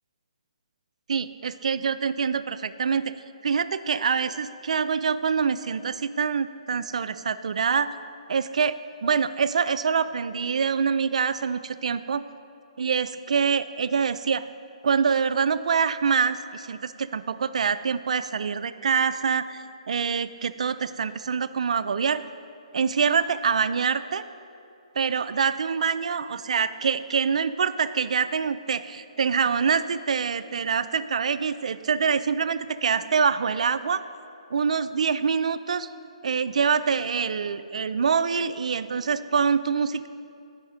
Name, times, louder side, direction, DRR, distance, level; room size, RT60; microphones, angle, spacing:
voice 1, 1.1-3.1 3.4-7.9 8.3-12.2 12.8-14.4 14.8-22.2 22.7-24.2 25.0-34.0 34.5-35.9 36.2-40.1, right 6 dB, 65° right, 12 dB, 0.4 m, -25 dB
9.4 x 5.5 x 5.0 m, 2.6 s
hypercardioid pair, 155°, 4 cm